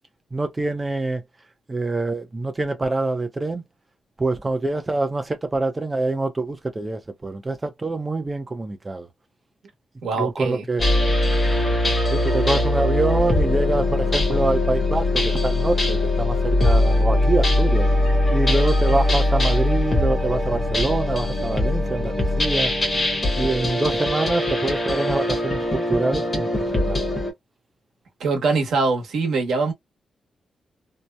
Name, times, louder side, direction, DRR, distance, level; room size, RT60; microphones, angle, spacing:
voice 1, 0.3-1.2 1.7-3.6 4.2-9.1 10.1-10.8 12.1-17.9 18.3-22.7 23.4-27.0, right 2 dB, 15° right, 0.5 m, -25 dB
voice 2, 10.0-10.6 28.2-29.7, right 4 dB, 75° right, 1.0 m, -23 dB
sound 1, 10.8-27.3, left 1 dB, 20° left, 0.9 m, -21 dB
2.7 x 2.1 x 2.2 m
wide cardioid pair, 175°, 0 cm